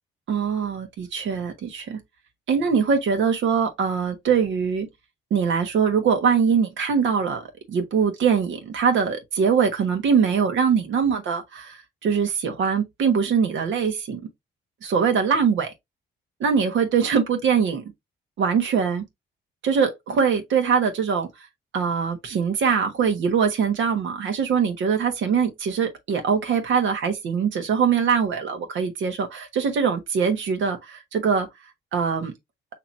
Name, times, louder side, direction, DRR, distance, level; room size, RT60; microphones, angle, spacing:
voice 1, 0.3-2.0 2.5-4.9 5.3-7.4 7.7-14.2 14.8-15.7 16.4-17.8 18.4-19.0 19.6-21.3 21.7-31.5 31.9-32.3, right 6 dB, 75° right, 1.4 m, -22 dB
5.7 x 2.9 x 2.8 m
cardioid pair, 90°, 20 cm